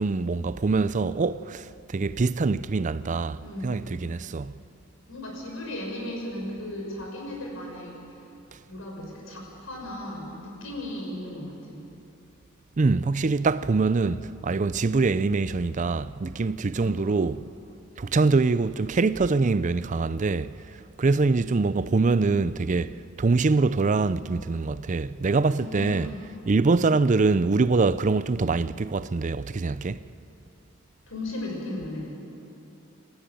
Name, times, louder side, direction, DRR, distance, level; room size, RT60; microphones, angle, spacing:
voice 1, 0.0-1.7 1.9-4.5 12.8-17.4 18.0-20.5 21.0-26.1 26.5-30.0, right 3 dB, 35° right, 0.5 m, -24 dB
voice 2, 3.4-3.8 5.1-8.0 8.7-11.8 16.8-17.1 25.6-26.2 31.1-32.1, left 1 dB, 75° left, 6.3 m, -36 dB
28.0 x 14.0 x 9.1 m
head